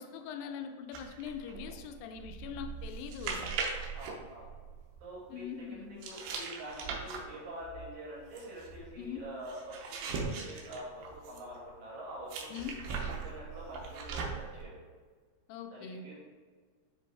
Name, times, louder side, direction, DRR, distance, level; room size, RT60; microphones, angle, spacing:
voice 1, 0.0-3.5 5.3-5.9 9.0-9.2 12.5-12.8 15.5-16.0, left 8 dB, 80° left, 6 dB, 2.2 m, -42 dB
sound 1, 0.9-5.0 6.0-11.6 12.3-14.6, right 5 dB, 85° right, 2.8 m, -40 dB
voice 2, 3.9-4.5 5.0-5.4 5.7-12.7 13.0-14.8 15.7-16.1, right 1 dB, 55° right, -6 dB, 3.1 m, -46 dB
9.9 x 3.4 x 3.5 m, 1.5 s
omnidirectional pair, 4.4 m